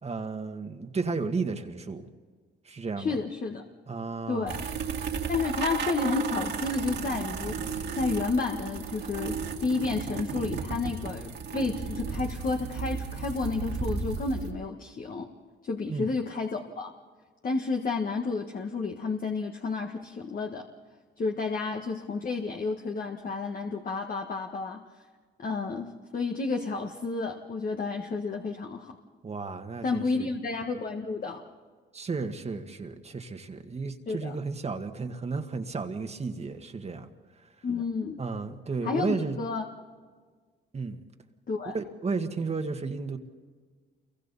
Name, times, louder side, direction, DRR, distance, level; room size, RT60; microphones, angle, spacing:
voice 1, 0.0-2.1 2.6-3.1 3.9-4.6 15.9-16.1 29.2-30.3 31.9-37.1 38.2-39.4 40.7-41.0 41.7-43.2, right 4 dB, 30° right, 5 dB, 1.7 m, -33 dB
voice 2, 3.0-3.6 4.3-4.7 5.3-15.3 15.6-16.9 17.4-20.6 21.2-24.8 25.4-28.9 29.8-31.4 34.1-34.4 37.6-38.2 38.8-39.7 41.5-41.7, left 4 dB, 45° left, 2 dB, 1.7 m, -31 dB
sound 1, 4.5-14.5, right 6 dB, 60° right, 2.5 m, -34 dB
28.0 x 23.5 x 4.2 m, 1.5 s
cardioid pair, 90°, 20 cm